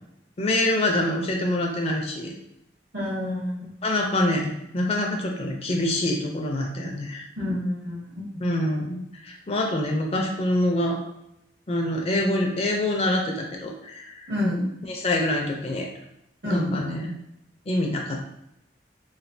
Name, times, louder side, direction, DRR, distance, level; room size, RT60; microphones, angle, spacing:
voice 1, 0.4-2.3 3.8-7.2 8.4-11.0 11.7-14.3 14.9-15.9 16.4-17.1 17.7-18.3, left 1 dB, 35° left, 1 dB, 0.5 m, -25 dB
voice 2, 2.9-3.7 7.4-8.4 14.3-14.7 16.4-16.8, left 1 dB, 65° right, -5 dB, 1.3 m, -28 dB
3.1 x 2.5 x 2.6 m, 0.83 s
head